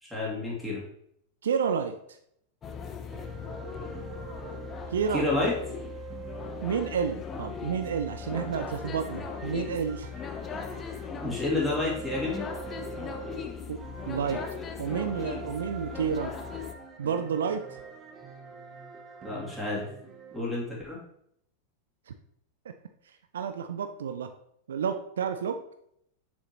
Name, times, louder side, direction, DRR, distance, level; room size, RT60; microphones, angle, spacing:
voice 1, 0.0-0.8 5.1-5.5 11.2-12.5 19.2-19.9 20.3-21.0, left 2 dB, 5° left, -6 dB, 2.7 m, -29 dB
voice 2, 1.4-1.9 4.9-5.3 6.6-10.1 13.7-14.4 14.8-16.3 17.0-17.8 22.1-22.2 23.3-24.3 24.7-25.6, right 7 dB, 65° right, 8 dB, 0.4 m, -30 dB
sound 1, 2.6-16.7, left 6 dB, 25° left, 0.7 m, -39 dB
sound 2, 3.1-20.4, right 5 dB, 25° right, 1.0 m, -45 dB
7.1 x 6.3 x 3.0 m, 0.72 s
figure-of-eight pair, 90°, 0 cm